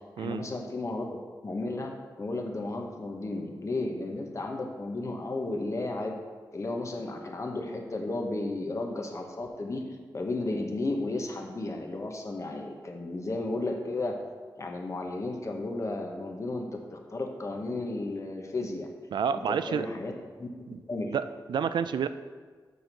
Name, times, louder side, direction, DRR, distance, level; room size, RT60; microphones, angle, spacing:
voice 1, 0.2-1.9 2.2-6.2 6.5-14.1 14.6-18.9 19.3-20.1 20.4-20.5 20.9-21.1, left 2 dB, 40° left, 2 dB, 1.1 m, -33 dB
voice 2, 19.1-19.9 20.7-20.8 21.1-21.2 21.5-22.1, right 7 dB, 80° right, 12 dB, 0.3 m, -28 dB
6.5 x 4.5 x 5.2 m, 1.5 s
cardioid pair, 75°, 8 cm